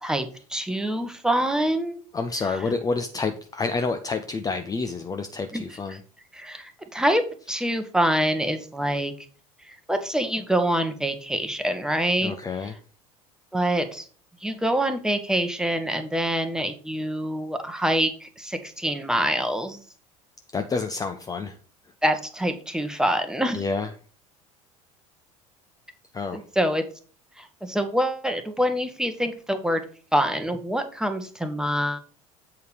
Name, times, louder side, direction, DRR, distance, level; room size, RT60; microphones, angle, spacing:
voice 1, 0.0-2.0 5.5-5.6 6.3-9.1 9.7-12.3 13.5-14.1 14.4-19.8 22.0-23.6 26.3-26.8 27.4-29.8 30.1-32.0, equal, 5° right, 7 dB, 1.2 m, -25 dB
voice 2, 2.1-6.0 12.2-12.8 20.5-21.6 21.8-21.9 23.5-23.9 26.1-26.4, left 4 dB, 20° left, 7 dB, 0.7 m, -29 dB
8.1 x 4.7 x 5.1 m, 0.41 s
figure-of-eight pair, 65°, 18 cm